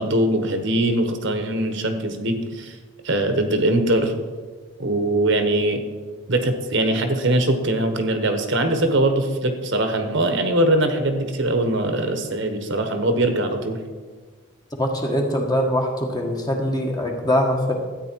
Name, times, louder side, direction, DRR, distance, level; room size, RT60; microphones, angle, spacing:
voice 1, 0.0-2.8 3.0-4.1 4.8-5.8 6.3-13.8, right 1 dB, 60° right, 6 dB, 1.2 m, -21 dB
voice 2, 14.8-17.7, equal, 20° left, 1 dB, 1.4 m, -22 dB
13.5 x 9.2 x 4.6 m, 1.4 s
head